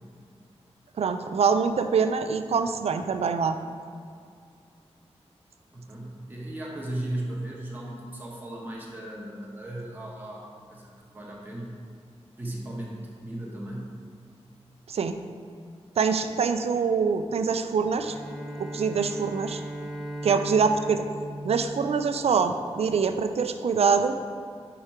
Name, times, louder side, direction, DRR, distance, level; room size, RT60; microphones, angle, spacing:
voice 1, 1.0-3.6 14.9-15.2 16.0-18.2 18.6-19.6 20.2-21.0 21.4-24.2, right 5 dB, 65° right, 8 dB, 0.4 m, -24 dB
voice 2, 5.7-11.8 12.4-14.0, right 1 dB, 15° right, -4 dB, 1.0 m, -36 dB
Bowed string instrument, 17.9-22.5, right 1 dB, ahead, 0.6 m, -38 dB
5.1 x 4.6 x 4.3 m, 2.3 s
wide cardioid pair, 140°, 11 cm